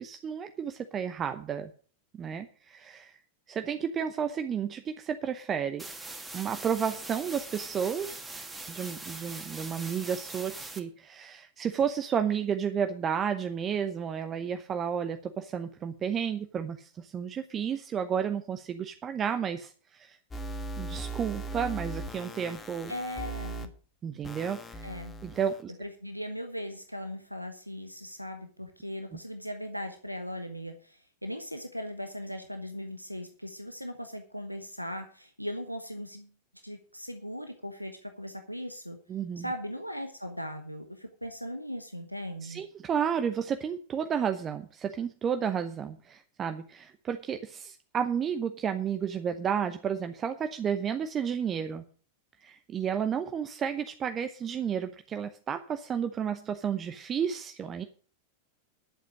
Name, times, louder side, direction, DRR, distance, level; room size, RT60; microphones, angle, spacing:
voice 1, 0.0-1.7 2.1-3.2 3.5-5.8 6.3-8.2 8.7-20.2 20.8-22.9 24.0-24.9 25.2-25.7 29.1-29.2 39.1-39.5 42.4-51.8 52.4-57.8, right 7 dB, 25° right, 8 dB, 0.8 m, -32 dB
sound 1, 5.8-10.8, right 2 dB, 5° right, 2.0 m, -42 dB
sound 2, 20.3-23.7 24.2-25.6, right 2 dB, 15° left, 1.5 m, -39 dB
voice 2, 22.9-23.7 24.8-25.1 25.8-36.3 36.6-39.0 39.4-42.6, equal, 90° left, 6 dB, 1.1 m, -38 dB
11.5 x 7.6 x 6.1 m, 0.42 s
figure-of-eight pair, 90°, 0 cm